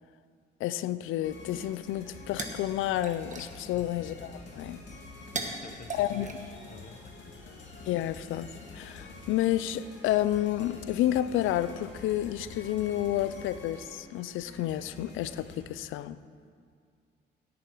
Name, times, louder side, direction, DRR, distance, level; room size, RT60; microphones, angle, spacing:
voice 1, 0.6-4.8 5.9-6.3 7.9-16.2, left 13 dB, 85° left, 15 dB, 0.4 m, -30 dB
sound 1, 1.2-15.6, left 3 dB, 65° left, 2.2 m, -47 dB
sound 2, 1.9-7.2, right 4 dB, 40° right, 1.5 m, -42 dB
voice 2, 3.7-4.1 5.3-7.6, left 5 dB, 40° left, 9 dB, 0.9 m, -50 dB
17.0 x 8.3 x 4.6 m, 2.2 s
cardioid pair, 90°, 20 cm